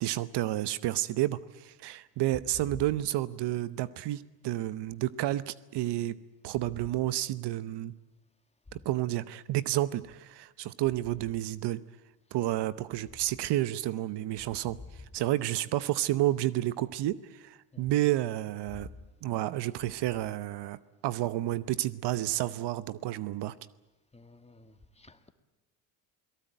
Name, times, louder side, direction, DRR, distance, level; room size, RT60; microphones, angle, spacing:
voice 1, 0.0-6.2 6.4-7.9 8.7-11.8 12.3-14.8 15.1-18.9 19.2-23.5, right 14 dB, 60° right, 0.9 m, -30 dB
voice 2, 24.1-25.3, left 3 dB, 15° left, 1.8 m, -48 dB
28.0 x 18.0 x 9.1 m
supercardioid pair, 95°, 46 cm